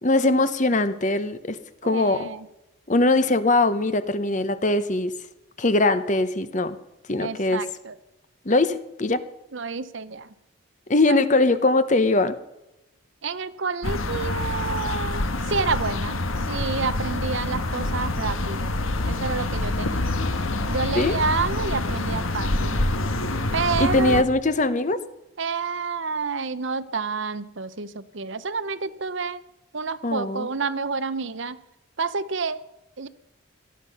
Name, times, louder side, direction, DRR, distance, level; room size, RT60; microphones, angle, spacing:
voice 1, 0.0-1.6 1.8-2.3 2.9-5.2 5.6-6.8 7.1-7.7 8.4-9.2 10.9-12.4 20.9-21.2 23.8-25.0 30.0-30.5, left 2 dB, 35° left, 12 dB, 0.9 m, -21 dB
voice 2, 1.8-2.5 7.2-7.9 9.5-10.3 11.1-11.2 13.2-18.7 19.1-20.1 20.7-22.7 23.5-24.2 25.4-29.4 29.7-31.6 32.0-32.6 33.0-33.1, right 4 dB, 60° right, 14 dB, 0.8 m, -29 dB
sound 1, 13.8-24.2, left 2 dB, 75° left, 1.4 m, -26 dB
18.5 x 12.5 x 5.6 m, 0.92 s
head